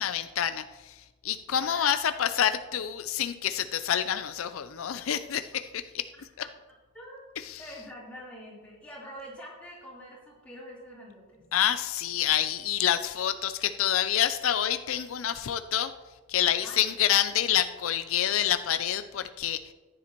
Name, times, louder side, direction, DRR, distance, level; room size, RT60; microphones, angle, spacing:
voice 1, 0.0-6.1 7.4-7.6 11.5-15.9 16.3-19.7, left 10 dB, 80° left, 10 dB, 0.5 m, -27 dB
voice 2, 1.5-2.3 6.9-11.4 16.6-16.9, equal, 5° left, -7 dB, 3.7 m, -45 dB
14.0 x 10.0 x 3.0 m, 1.2 s
head